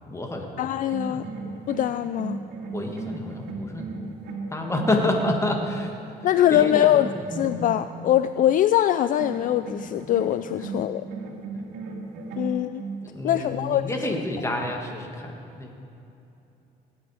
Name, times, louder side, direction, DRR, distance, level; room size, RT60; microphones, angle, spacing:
voice 1, 0.1-0.5 1.1-1.3 2.7-4.0 4.5-5.9 6.5-6.9 12.3-12.4 13.0-15.7, left 1 dB, 15° left, 2 dB, 1.9 m, -28 dB
voice 2, 0.6-1.2 1.7-2.4 6.2-11.1 12.4-12.8 13.2-13.9, left 12 dB, 50° left, 12 dB, 0.4 m, -22 dB
sound 1, 0.8-6.0 6.5-8.1 9.2-13.0, right 3 dB, 85° right, 2.1 m, -35 dB
18.0 x 9.7 x 4.9 m, 2.8 s
cardioid pair, 110°, 17 cm